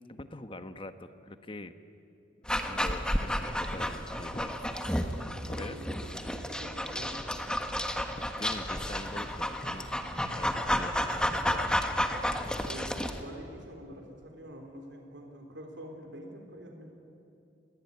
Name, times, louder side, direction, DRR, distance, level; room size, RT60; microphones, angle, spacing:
voice 1, 0.1-1.7 2.4-4.6 5.2-5.8 8.2-9.9 10.2-11.7, left 2 dB, 30° left, 9 dB, 1.1 m, -43 dB
Dog, 2.5-13.2, left 1 dB, 5° left, 1.5 m, -32 dB
voice 2, 5.6-7.2 12.6-16.9, equal, 70° right, 2 dB, 3.5 m, -46 dB
28.5 x 21.5 x 9.6 m, 2.8 s
head